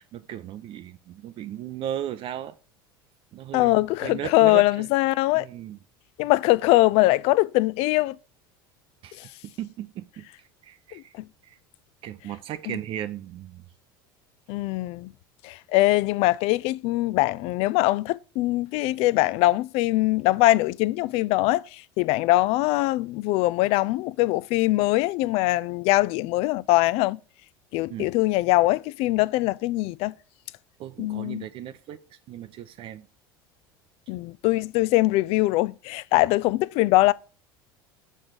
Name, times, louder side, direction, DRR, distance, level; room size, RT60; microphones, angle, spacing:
voice 1, 0.0-2.6 3.3-3.7 4.0-4.9 5.3-5.8 9.0-11.1 11.4-11.6 12.0-13.6 27.9-28.1 30.8-33.1, right 11 dB, 50° right, 0.6 m, -36 dB
voice 2, 3.5-5.5 6.2-8.2 9.2-9.3 10.9-11.2 12.7-12.8 14.5-15.1 15.4-27.2 27.7-30.1 31.0-31.4 34.1-37.1, left 18 dB, 55° left, 0.4 m, -22 dB
6.9 x 3.6 x 6.1 m
hypercardioid pair, 80°, 12 cm